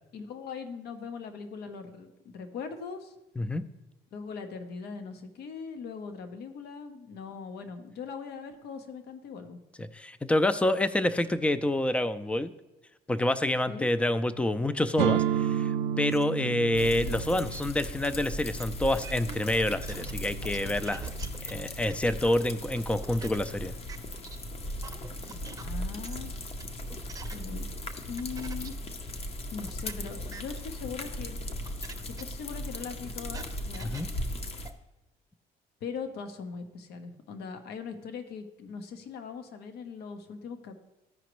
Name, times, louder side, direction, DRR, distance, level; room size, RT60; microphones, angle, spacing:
voice 1, 0.1-3.1 4.1-9.6 13.7-13.9 25.2-26.3 27.3-27.6 28.1-28.8 29.5-31.4 32.2-33.9 35.8-40.7, left 5 dB, 75° left, 8 dB, 0.9 m, -40 dB
voice 2, 9.8-12.5 13.1-21.1 21.4-23.7 33.8-34.1, left 1 dB, 5° left, 13 dB, 0.4 m, -28 dB
sound 1, 15.0-22.7, right 10 dB, 75° right, 0.4 m, -34 dB
sound 2, 16.1-16.2 16.7-16.8 17.3-17.6 18.6-18.7 19.0-20.1 20.4-20.6 20.9-21.5 21.9-22.4 22.7-23.4 23.9-24.0 24.2-24.4 24.8-25.6 26.0-26.2 26.6-27.3 28.2-28.7 29.0-29.1 29.7-29.9 30.3-30.4 31.1-31.2 31.7-31.9 32.2-32.3 32.7-34.0 34.7-34.8, right 5 dB, 20° right, 0.7 m, -43 dB
sound 3, 16.7-34.7, left 1 dB, 35° left, 0.8 m, -38 dB
14.0 x 5.0 x 3.1 m, 0.97 s
cardioid pair, 110°, 17 cm